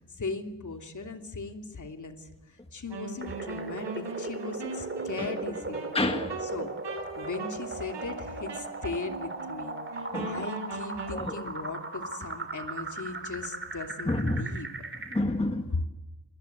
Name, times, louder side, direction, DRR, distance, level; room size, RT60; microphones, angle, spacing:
voice 1, 0.0-5.9 6.5-6.7 7.2-9.8 10.2-14.8, left 3 dB, 45° left, 5 dB, 3.0 m, -38 dB
Wind instrument woodwind instrument, 2.9-11.2, right 3 dB, 75° right, 7.4 m, -40 dB
sound 1, 3.2-15.2, right 3 dB, 30° right, 3.2 m, -38 dB
voice 2, 5.9-6.4 10.1-10.5 11.1-11.5 14.1-14.4 15.1-15.7, left 2 dB, 15° left, 5 dB, 1.7 m, -29 dB
27.0 x 20.5 x 8.1 m, 1.0 s
wide cardioid pair, 95°, 42 cm